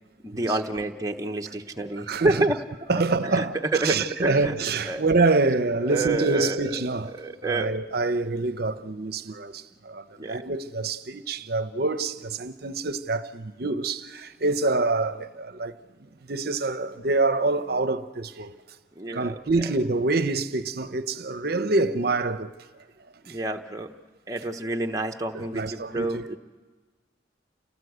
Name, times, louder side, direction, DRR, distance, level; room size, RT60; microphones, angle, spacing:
voice 1, 0.2-2.6 2.9-3.5 3.7-4.5 4.8-5.0 5.8-6.8 7.1-7.7 10.2-10.4 18.9-19.7 23.2-23.9 24.3-26.3, right 2 dB, 20° right, 1.0 m, -28 dB
voice 2, 2.1-2.5 2.9-7.1 7.4-18.6 19.1-22.5 23.3-23.4 25.3-26.3, right 3 dB, 55° right, 0.8 m, -26 dB
29.0 x 18.0 x 8.1 m
head